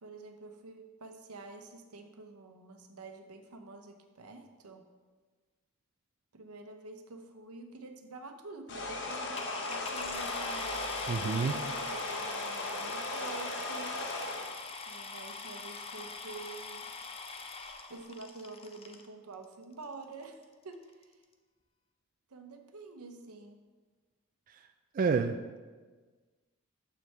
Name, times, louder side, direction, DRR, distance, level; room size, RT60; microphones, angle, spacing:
voice 1, 0.0-4.9 6.3-10.8 11.4-14.0 14.9-16.9 17.9-21.2 22.3-23.6, right 3 dB, 85° right, 5 dB, 0.9 m, -48 dB
sound 1, 8.7-14.5, left 2 dB, 55° left, 1.0 m, -37 dB
sound 2, 9.1-19.1 19.8-19.9 20.4-20.5 20.7-21.0, left 4 dB, 25° left, 0.5 m, -43 dB
voice 2, 11.1-11.5 24.9-25.6, right 5 dB, 40° right, 6 dB, 0.3 m, -29 dB
9.3 x 6.9 x 3.4 m, 1.4 s
head